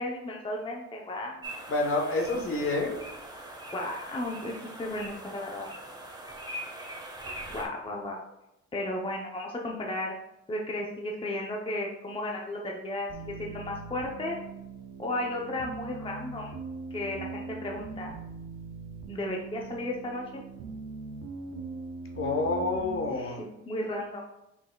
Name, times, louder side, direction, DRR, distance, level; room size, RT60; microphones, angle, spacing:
voice 1, 0.0-1.6 3.7-5.7 7.5-8.2 8.7-10.1 10.5-14.4 15.0-16.5 16.9-18.1 19.1-20.4 23.1-23.3 23.7-24.3, left 1 dB, 20° left, -1 dB, 0.7 m, -34 dB
sound 1, 1.4-7.6, right 1 dB, 15° right, 1.2 m, -42 dB
voice 2, 1.7-3.0 22.2-23.4, left 2 dB, 45° left, 1 dB, 1.1 m, -28 dB
sound 2, 13.1-23.1, right 4 dB, 75° right, 0.8 m, -41 dB
5.7 x 4.1 x 2.3 m, 0.90 s
cardioid pair, 90°, 30 cm